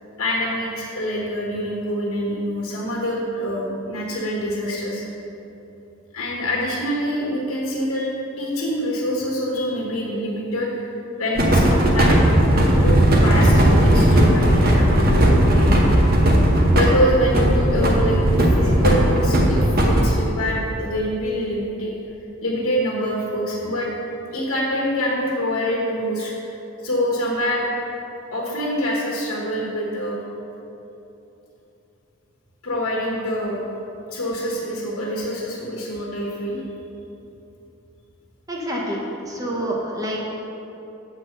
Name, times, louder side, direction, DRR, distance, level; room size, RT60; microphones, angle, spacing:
voice 1, 0.2-5.0 6.1-10.9 11.2-12.2 12.8-15.7 16.7-21.9 22.4-23.9 24.3-26.3 26.8-27.7 28.3-30.2 32.6-33.6 34.1-36.6, equal, 90° left, -4 dB, 1.2 m, -25 dB
sound 1, 11.4-20.0, right 1 dB, 45° right, 0.9 m, -16 dB
voice 2, 38.5-39.0 39.3-40.2, right 1 dB, 15° right, -3 dB, 0.8 m, -27 dB
7.9 x 4.1 x 6.4 m, 3.0 s
head